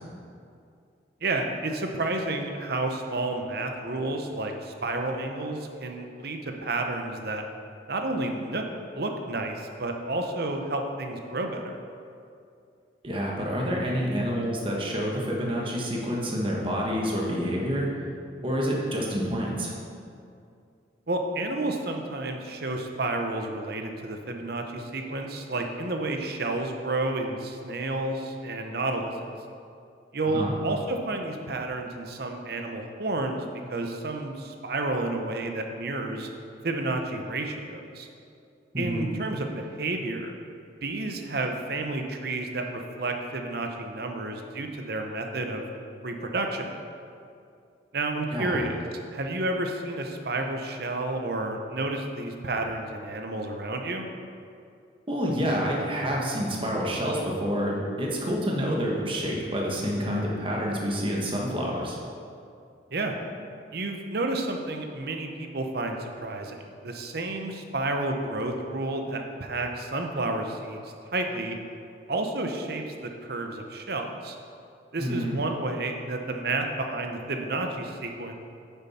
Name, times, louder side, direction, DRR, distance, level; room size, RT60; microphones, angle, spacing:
voice 1, 1.2-7.4 7.9-8.6 8.9-11.8 21.1-29.3 30.1-36.3 36.6-38.1 38.8-40.3 40.8-45.7 46.0-46.8 47.9-48.8 49.1-54.1 62.9-63.2 63.7-66.6 66.8-70.8 71.1-71.6 72.1-74.3 74.9-78.3, right 2 dB, 60° right, 4 dB, 0.9 m, -31 dB
voice 2, 13.0-17.9 18.4-19.7 30.3-30.5 38.7-39.1 48.3-48.6 55.1-62.0 75.0-75.4, equal, 30° right, -2 dB, 1.4 m, -28 dB
9.6 x 7.2 x 4.3 m, 2.4 s
head